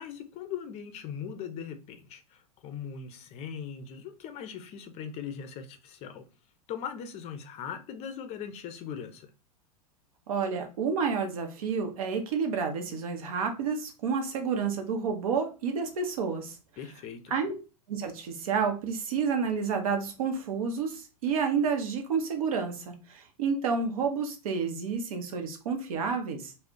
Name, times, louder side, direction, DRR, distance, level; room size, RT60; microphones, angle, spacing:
voice 1, 0.0-6.3 6.7-9.3 16.8-17.3, left 7 dB, 35° left, 0.5 m, -40 dB
voice 2, 10.3-16.6 17.3-17.5 17.9-26.5, right 5 dB, 65° right, 0.7 m, -30 dB
2.4 x 2.1 x 3.6 m
hypercardioid pair, 95°, 19 cm